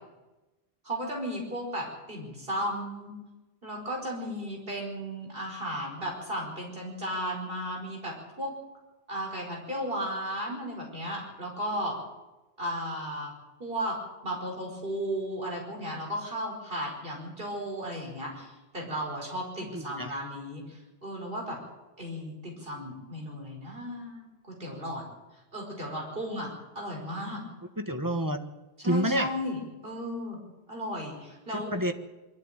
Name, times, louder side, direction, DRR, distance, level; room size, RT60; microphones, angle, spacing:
voice 1, 0.8-3.2 3.6-8.5 9.1-12.0 12.6-13.3 13.6-14.0 14.2-21.6 22.0-25.0 25.5-27.4 28.8-30.4 30.7-31.7, equal, 60° right, 0 dB, 5.3 m, -35 dB
voice 2, 19.6-20.2 27.8-28.4 28.8-29.3 31.5-31.9, equal, 20° right, 7 dB, 1.3 m, -29 dB
23.0 x 13.5 x 9.0 m, 1.1 s
omnidirectional pair, 1.1 m